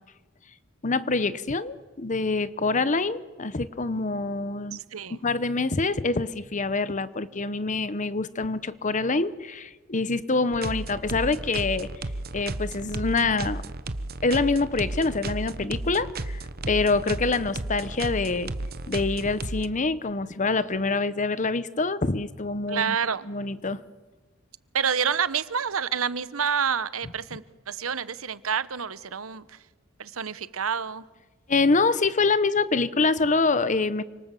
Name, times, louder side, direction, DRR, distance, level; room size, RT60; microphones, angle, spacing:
voice 1, 0.8-4.8 5.2-11.9 12.3-13.6 14.2-16.4 16.7-18.5 18.9-23.0 23.3-23.8 31.5-34.0, left 3 dB, 35° left, 15 dB, 0.9 m, -25 dB
voice 2, 4.7-5.2 22.7-23.3 24.7-29.6 30.0-31.0, right 7 dB, 85° right, 16 dB, 1.0 m, -28 dB
sound 1, 10.5-19.7, right 2 dB, 50° right, 1.2 m, -33 dB
29.0 x 26.0 x 7.6 m, 1.2 s
head